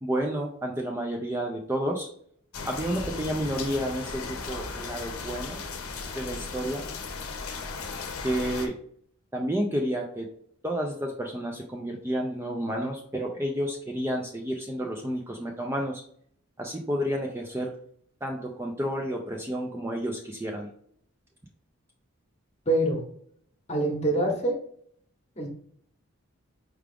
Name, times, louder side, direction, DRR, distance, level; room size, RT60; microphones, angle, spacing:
voice 1, 0.0-2.1 2.6-5.6 6.2-6.8 8.2-8.7 9.3-10.3 10.6-16.0 16.6-17.7 18.2-20.7, equal, 10° right, 1 dB, 0.3 m, -30 dB
sound 1, 2.5-8.7, left 4 dB, 90° left, 0.7 m, -36 dB
voice 2, 22.7-23.0 23.7-24.6 25.4-25.5, right 1 dB, 30° left, 1 dB, 0.9 m, -25 dB
4.7 x 2.4 x 3.4 m, 0.62 s
head